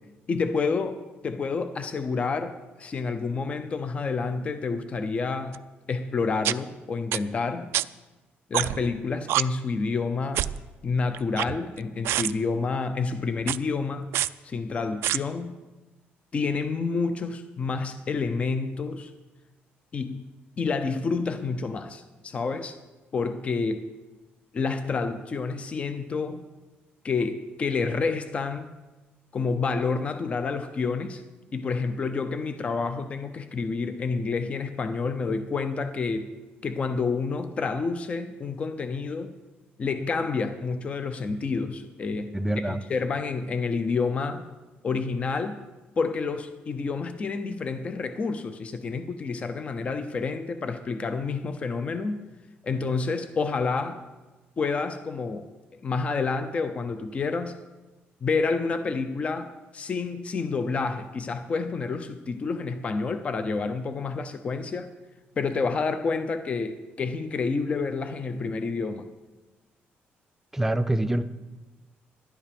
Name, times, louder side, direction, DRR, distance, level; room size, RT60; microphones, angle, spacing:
voice 1, 0.3-7.7 8.5-10.5 10.8-14.1 14.4-15.6 16.3-19.1 19.9-20.3 20.6-22.8 23.1-23.9 24.5-26.5 27.0-28.7 29.3-31.2 31.5-36.3 36.6-39.3 39.8-42.3 42.6-44.5 44.8-45.6 46.0-52.2 52.6-54.0 54.6-55.5 55.8-57.6 58.2-64.9 65.4-69.1, left 4 dB, 30° left, 9 dB, 0.7 m, -29 dB
sound 1, 5.5-5.6 6.4-6.5 7.1-7.2 7.7-7.8 8.5-8.9 9.3-9.4 10.3-10.6 11.1-11.8 12.0-12.3 13.4-13.6 14.1-14.3 15.0-15.2, right 14 dB, 90° right, 0.3 m, -25 dB
voice 2, 42.3-42.8 70.5-71.2, right 1 dB, 10° right, 11 dB, 0.5 m, -25 dB
11.5 x 11.0 x 5.2 m, 1.2 s
cardioid pair, 150°, 4 cm